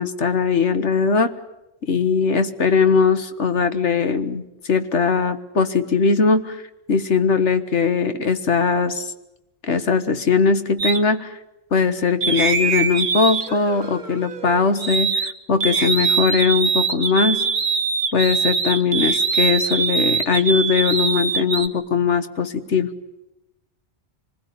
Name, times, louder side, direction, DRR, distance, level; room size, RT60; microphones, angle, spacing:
voice 1, 0.0-1.3 1.8-4.4 4.7-6.6 6.9-9.1 9.6-11.3 11.7-17.4 18.1-22.9, left 5 dB, 80° left, 10 dB, 1.7 m, -20 dB
sound 1, 10.8-11.0 12.2-15.3 15.6-21.7, right 5 dB, 45° right, 1.3 m, -23 dB
25.0 x 21.0 x 9.5 m, 0.93 s
omnidirectional pair, 1.2 m